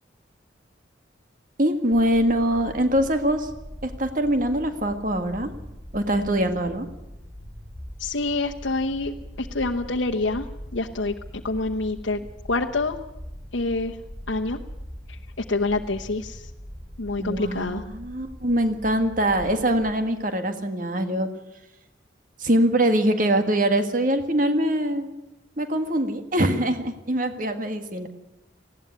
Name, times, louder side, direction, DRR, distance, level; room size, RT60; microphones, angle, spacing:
voice 1, 1.6-3.5 3.8-5.5 5.9-6.9 17.2-21.3 22.4-25.1 25.6-28.1, right 1 dB, 45° right, 7 dB, 1.8 m, -23 dB
sound 1, 1.9-19.9, equal, 15° right, 7.2 m, -42 dB
voice 2, 8.0-10.5 10.7-12.2 12.5-13.0 13.5-14.0 14.3-14.6 15.1-15.2 15.5-16.5 17.0-17.8, left 3 dB, 80° left, 1 dB, 1.0 m, -26 dB
19.5 x 16.0 x 9.7 m, 0.94 s
head